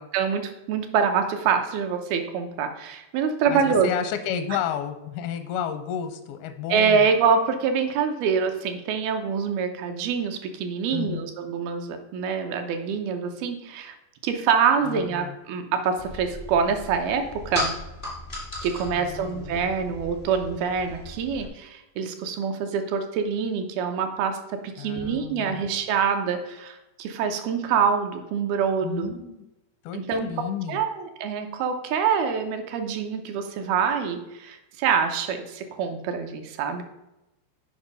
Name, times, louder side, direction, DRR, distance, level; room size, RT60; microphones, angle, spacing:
voice 1, 0.1-3.9 6.7-13.9 14.2-17.7 18.6-29.1 29.9-30.3 30.7-36.8, right 6 dB, 80° right, 6 dB, 2.6 m, -25 dB
voice 2, 3.5-7.1 10.9-11.3 14.8-15.3 18.9-19.7 24.8-25.6 28.8-29.4 29.8-30.8, left 9 dB, 85° left, 9 dB, 2.5 m, -32 dB
sound 1, 16.0-21.5, left 1 dB, 40° left, 0.6 m, -36 dB
7.0 x 5.3 x 5.3 m, 0.94 s
omnidirectional pair, 4.5 m